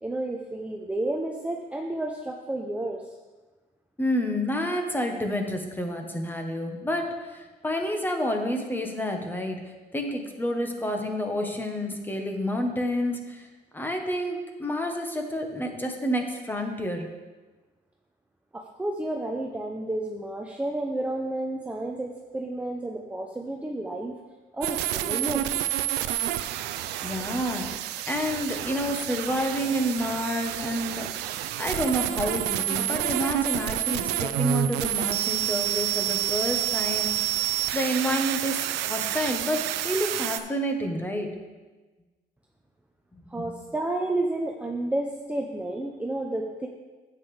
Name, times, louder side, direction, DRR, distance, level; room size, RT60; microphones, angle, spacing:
voice 1, 0.0-3.0 18.5-24.2 24.5-25.6 43.3-46.7, right 1 dB, 10° right, 1 dB, 0.6 m, -31 dB
voice 2, 4.0-9.6 9.9-13.5 13.7-17.1 27.0-27.7 28.0-41.3 43.1-43.5, equal, 10° left, 3 dB, 1.1 m, -29 dB
sound 1, 24.6-40.4, right 13 dB, 85° right, 0.5 m, -29 dB
9.7 x 8.1 x 3.3 m, 1.3 s
cardioid pair, 110°, 17 cm